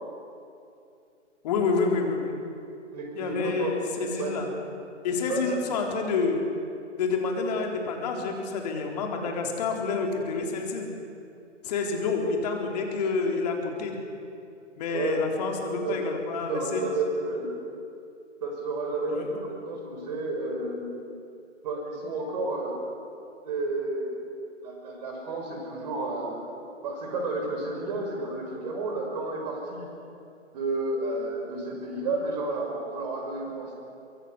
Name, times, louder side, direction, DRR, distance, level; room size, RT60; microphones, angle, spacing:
voice 1, 1.4-2.4 3.1-4.5 5.0-6.4 7.0-10.9 11.6-14.0 14.8-16.8 19.1-19.3, left 4 dB, 35° left, 2 dB, 4.0 m, -28 dB
voice 2, 2.9-3.7 4.2-4.3 5.2-5.6 11.7-12.0 14.9-15.1 15.8-16.0 16.5-17.5 18.4-20.9 21.6-22.8 23.4-24.2 24.6-26.4 26.8-29.9 30.5-33.7, right 2 dB, 35° right, 1 dB, 5.9 m, -31 dB
24.0 x 22.5 x 8.3 m, 2.6 s
figure-of-eight pair, 135°, 37 cm